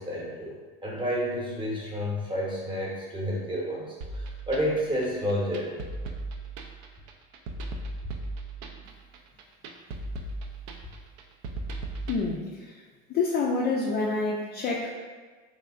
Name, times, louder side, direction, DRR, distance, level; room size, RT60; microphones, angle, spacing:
voice 1, 0.0-5.8, equal, 15° right, -4 dB, 0.9 m, -30 dB
sound 1, 4.0-12.2, right 2 dB, 60° right, 0.5 m, -37 dB
voice 2, 12.1-12.8 13.1-14.9, left 3 dB, 35° left, -3 dB, 0.4 m, -28 dB
3.3 x 2.8 x 2.4 m, 1.4 s
supercardioid pair, 100°, 30 cm